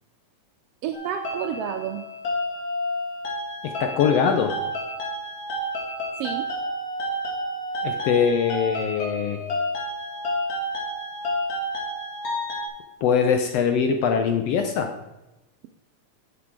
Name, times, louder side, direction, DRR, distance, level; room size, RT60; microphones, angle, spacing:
voice 1, 0.8-2.0 6.2-6.5, right 9 dB, 80° right, 6 dB, 1.4 m, -30 dB
sound 1, 0.9-12.7, equal, 55° left, 3.1 m, -30 dB
voice 2, 3.6-4.6 7.8-9.4 13.0-14.9, left 7 dB, 75° left, 6 dB, 1.5 m, -22 dB
11.0 x 6.0 x 4.6 m, 0.99 s
omnidirectional pair, 3.4 m